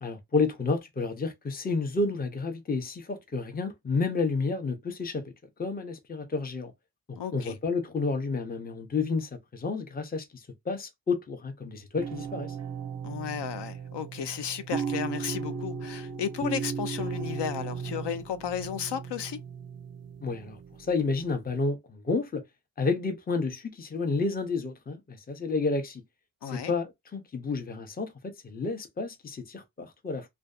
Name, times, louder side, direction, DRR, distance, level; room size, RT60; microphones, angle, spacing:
voice 1, 0.0-5.2 5.6-6.7 7.3-10.3 10.7-12.5 20.2-20.6 20.9-22.4 22.8-26.0 26.5-30.3, left 4 dB, 20° left, 0.5 m, -30 dB
voice 2, 7.2-7.6 13.0-19.4 26.4-26.7, left 8 dB, 70° left, 0.5 m, -34 dB
sound 1, 12.0-21.0, right 6 dB, 40° right, 0.4 m, -36 dB
2.5 x 2.2 x 2.3 m
wide cardioid pair, 105°, 43 cm